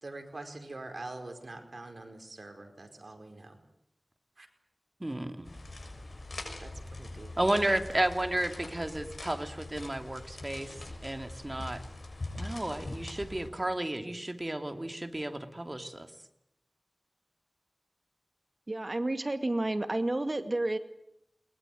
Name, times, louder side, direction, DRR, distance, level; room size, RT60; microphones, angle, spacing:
voice 1, 0.0-3.6 4.4-4.5 7.0-7.3, right 2 dB, 70° right, 5 dB, 4.9 m, -44 dB
voice 2, 5.0-5.5 7.4-10.8 11.0-11.8 12.3-16.1, right 1 dB, 35° right, 7 dB, 2.8 m, -32 dB
sound 1, 5.4-13.5, left 2 dB, 75° left, 6.9 m, -43 dB
voice 3, 18.7-20.8, right 2 dB, 50° right, 9 dB, 2.3 m, -30 dB
22.0 x 21.5 x 9.4 m, 0.79 s
wide cardioid pair, 40°, 0 cm